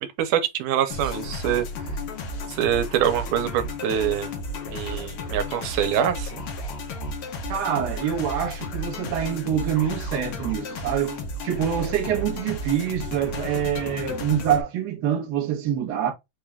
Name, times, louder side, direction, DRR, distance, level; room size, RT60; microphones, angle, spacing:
voice 1, 0.2-1.7 2.5-4.3 4.7-6.4, right 9 dB, 90° right, 2.2 m, -24 dB
sound 1, 0.9-14.6, left 2 dB, 75° left, 1.2 m, -33 dB
voice 2, 7.5-16.1, right 9 dB, 65° right, 1.0 m, -26 dB
5.2 x 2.4 x 3.3 m
omnidirectional pair, 3.6 m